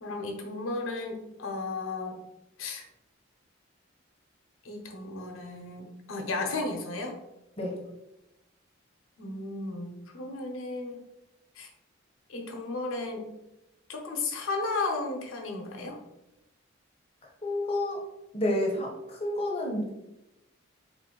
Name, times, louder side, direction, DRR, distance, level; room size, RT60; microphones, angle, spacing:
voice 1, 0.0-2.2 2.6-2.8 4.6-7.2 9.2-11.0 11.6-11.7 12.3-13.2 13.9-16.0, left 3 dB, 85° left, 3 dB, 0.8 m, -34 dB
voice 2, 17.4-18.0 18.3-19.9, left 1 dB, 30° left, -1 dB, 0.9 m, -29 dB
4.1 x 2.6 x 3.7 m, 0.91 s
head